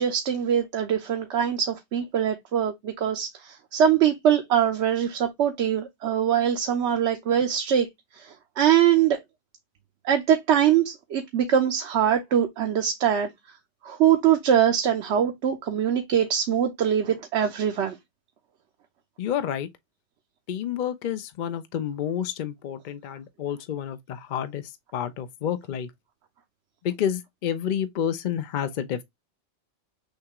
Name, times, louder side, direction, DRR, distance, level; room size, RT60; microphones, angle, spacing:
voice 1, 0.0-7.9 8.2-9.2 10.0-13.3 13.8-18.0, right 9 dB, 70° right, 1.0 m, -23 dB
voice 2, 19.2-19.7 20.5-24.6 24.9-25.9 26.8-29.0, left 9 dB, 60° left, 0.5 m, -29 dB
6.5 x 2.3 x 2.9 m
omnidirectional pair, 1.2 m